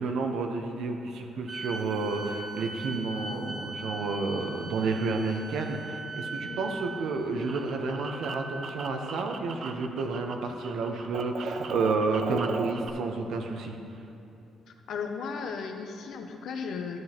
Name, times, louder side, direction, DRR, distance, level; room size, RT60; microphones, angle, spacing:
voice 1, 0.0-13.8, right 3 dB, 75° right, 4 dB, 0.9 m, -30 dB
sound 1, 1.5-9.0, right 3 dB, 25° right, 1.7 m, -40 dB
sound 2, 7.0-10.3 10.6-12.9, right 5 dB, 55° right, 0.5 m, -38 dB
voice 2, 14.9-17.0, left 5 dB, 75° left, 5 dB, 0.7 m, -35 dB
12.5 x 7.7 x 2.9 m, 2.8 s
cardioid pair, 90°, 0 cm